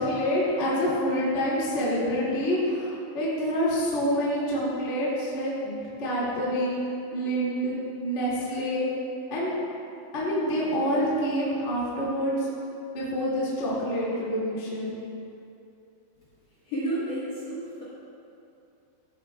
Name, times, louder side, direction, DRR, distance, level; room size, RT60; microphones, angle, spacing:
voice 1, 0.0-6.8 7.1-7.7 8.0-8.9 9.3-9.5 10.1-12.5 12.9-14.9, equal, 50° left, -7 dB, 0.8 m, -27 dB
voice 2, 16.6-17.8, right 1 dB, 85° left, -9 dB, 1.4 m, -31 dB
15.5 x 8.9 x 2.3 m, 2.7 s
omnidirectional pair, 5.5 m